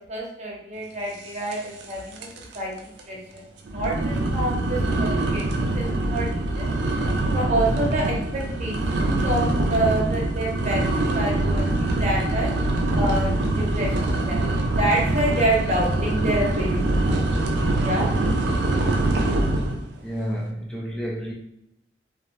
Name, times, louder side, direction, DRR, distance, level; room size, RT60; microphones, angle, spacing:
voice 1, 0.1-2.3 2.5-2.7 3.1-3.4 3.7-6.7 7.3-12.5 13.0-14.4 14.7-17.1 17.8-18.1, right 1 dB, 40° right, -2 dB, 0.7 m, -27 dB
sound 1, 1.5-1.9 2.2-2.6 3.0-3.1 3.7-19.8, right 2 dB, 75° right, 0.4 m, -24 dB
voice 2, 19.9-21.3, equal, 5° left, -4 dB, 0.3 m, -30 dB
2.6 x 2.0 x 3.0 m, 0.77 s
head